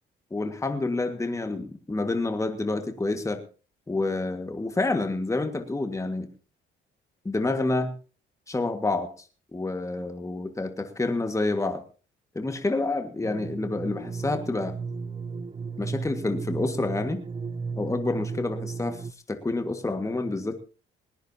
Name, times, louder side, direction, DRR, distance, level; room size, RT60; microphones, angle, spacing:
voice 1, 0.3-3.4 3.9-6.3 7.3-7.9 8.5-9.3 9.5-11.8 12.4-14.7 15.8-17.2 17.8-19.0 19.3-20.6, left 2 dB, 15° left, 7 dB, 1.8 m, -28 dB
sound 1, 13.2-19.1, right 5 dB, 25° right, 0.7 m, -35 dB
19.5 x 19.0 x 2.9 m, 0.36 s
cardioid pair, 90°, 20 cm